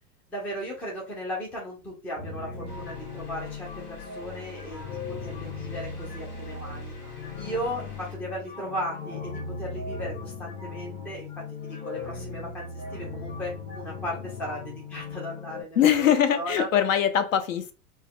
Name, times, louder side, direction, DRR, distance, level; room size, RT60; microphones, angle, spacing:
voice 1, 0.3-6.9 7.4-16.1 16.4-16.7, equal, 5° left, 0.4 m, -36 dB
sound 1, 2.2-15.6, left 4 dB, 20° left, 0.8 m, -38 dB
sound 2, 2.7-8.2, left 5 dB, 75° left, 1.6 m, -48 dB
voice 2, 15.8-17.7, left 9 dB, 60° left, 0.7 m, -22 dB
4.5 x 2.2 x 2.2 m
figure-of-eight pair, 95°, 46 cm